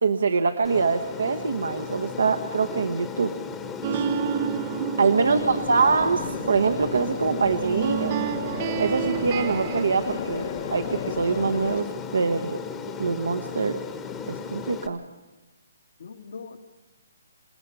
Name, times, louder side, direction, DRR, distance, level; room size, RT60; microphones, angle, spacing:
voice 1, 0.0-3.3 3.9-4.1 5.0-8.1 8.8-11.9 12.1-12.6 13.0-13.8 14.3-15.0, right 4 dB, 80° right, 6 dB, 1.1 m, -24 dB
Aircraft, 0.6-14.9, left 6 dB, 15° left, 1.2 m, -36 dB
sound 1, 3.8-9.8, right 8 dB, 35° right, 0.7 m, -30 dB
voice 2, 5.2-5.6 16.0-16.6, left 4 dB, 65° left, 7 dB, 1.8 m, -40 dB
sound 2, 5.4-11.8, left 8 dB, 50° left, 1.2 m, -35 dB
28.0 x 17.0 x 5.6 m, 1.1 s
hypercardioid pair, 150°, 0 cm